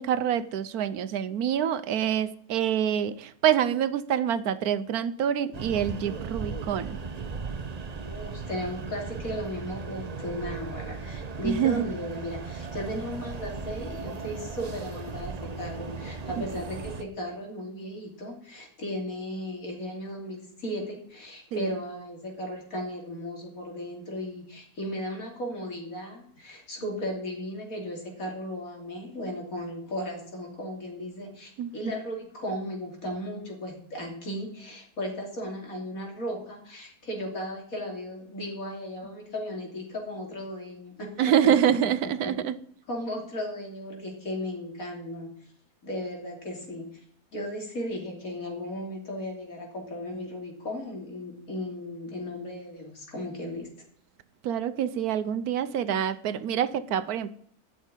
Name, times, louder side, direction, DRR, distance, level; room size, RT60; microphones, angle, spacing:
voice 1, 0.0-6.9 11.4-11.8 21.5-21.7 31.6-31.7 41.2-42.5 54.4-57.3, right 9 dB, 75° right, 1.2 m, -26 dB
sound 1, 5.5-17.0, right 4 dB, 40° right, 0.6 m, -37 dB
voice 2, 8.0-41.5 42.9-45.3 45.8-47.0 47.3-53.7, equal, 60° left, 3.5 m, -36 dB
13.0 x 6.4 x 9.8 m
omnidirectional pair, 1.6 m